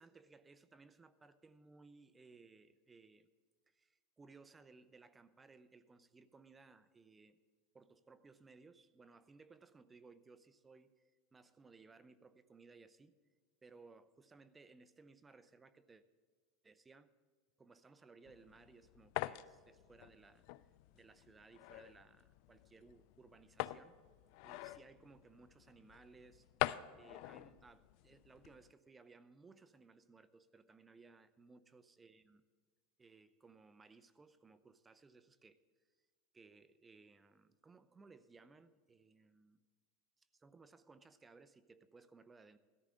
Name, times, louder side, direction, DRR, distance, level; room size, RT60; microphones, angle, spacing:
voice 1, 0.0-3.3 3.7-7.4 7.7-13.2 13.6-16.0 16.6-17.1 17.6-20.4 20.9-24.0 24.4-32.5 33.0-35.6 36.3-39.6 40.2-42.6, right 4 dB, 15° right, 0.6 m, -62 dB
sound 1, 18.3-28.7, left 18 dB, 60° left, 0.3 m, -45 dB
17.0 x 13.5 x 3.8 m
supercardioid pair, 130°, 0 cm